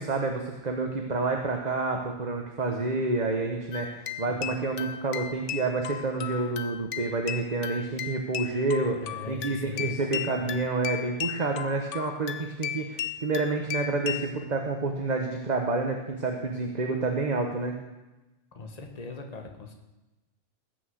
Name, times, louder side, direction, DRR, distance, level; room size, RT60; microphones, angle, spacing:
voice 1, 0.0-17.8, right 3 dB, 35° right, 3 dB, 1.3 m, -29 dB
sound 1, 3.7-14.3, left 10 dB, 65° left, 1.0 m, -36 dB
voice 2, 4.3-4.7 9.0-10.5 18.5-19.7, left 3 dB, 30° left, 3 dB, 1.6 m, -40 dB
19.0 x 6.4 x 7.9 m, 1.0 s
omnidirectional pair, 1.4 m